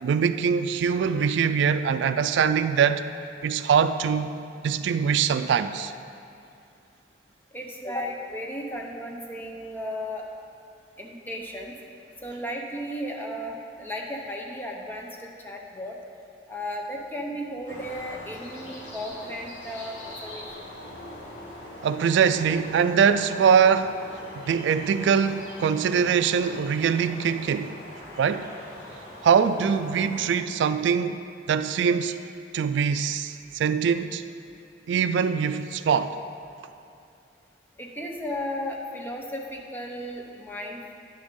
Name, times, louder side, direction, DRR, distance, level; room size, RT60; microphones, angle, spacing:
voice 1, 0.0-3.0 3.4-4.3 4.6-5.9 21.8-24.0 24.3-27.7 28.2-28.5 29.2-31.2 31.5-32.2 32.5-34.2 34.9-36.2, right 7 dB, 80° right, 11 dB, 0.3 m, -23 dB
voice 2, 7.5-10.3 11.0-11.8 12.2-16.0 16.5-20.6 37.8-40.9, equal, 10° left, 0 dB, 0.7 m, -35 dB
sound 1, 17.7-30.3, left 1 dB, 70° left, 1.9 m, -42 dB
10.0 x 6.2 x 3.7 m, 2.6 s
head